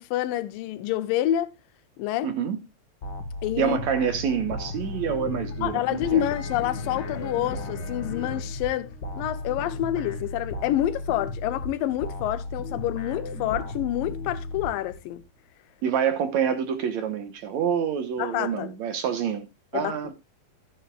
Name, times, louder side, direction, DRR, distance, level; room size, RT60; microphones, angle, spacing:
voice 1, 0.0-1.5 2.0-2.3 3.4-3.8 5.6-8.9 9.2-15.2 18.2-18.7 19.7-20.0, left 13 dB, 90° left, 2.4 m, -27 dB
voice 2, 2.2-2.6 3.6-6.2 15.8-19.5 19.7-20.1, right 8 dB, 65° right, 2.2 m, -27 dB
sound 1, 3.0-15.2, left 2 dB, 45° left, 1.5 m, -35 dB
sound 2, 4.4-10.2, left 6 dB, 65° left, 3.0 m, -41 dB
13.0 x 9.7 x 2.3 m
omnidirectional pair, 3.9 m